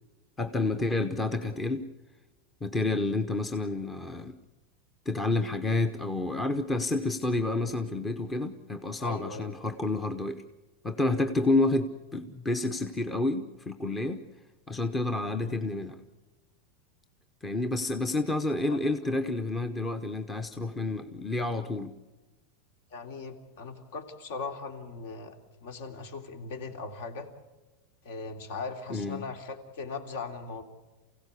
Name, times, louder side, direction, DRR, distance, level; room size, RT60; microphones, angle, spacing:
voice 1, 0.4-1.9 2.6-4.4 5.1-10.4 10.8-14.2 14.7-16.0 17.4-21.9 28.9-29.2, left 2 dB, 10° left, 9 dB, 0.8 m, -29 dB
voice 2, 9.0-9.5 15.3-15.5 18.7-18.8 22.9-25.3 25.6-27.3 28.0-30.6, left 4 dB, 60° left, 6 dB, 3.1 m, -39 dB
28.5 x 16.5 x 8.4 m, 1.1 s
supercardioid pair, 175°, 0 cm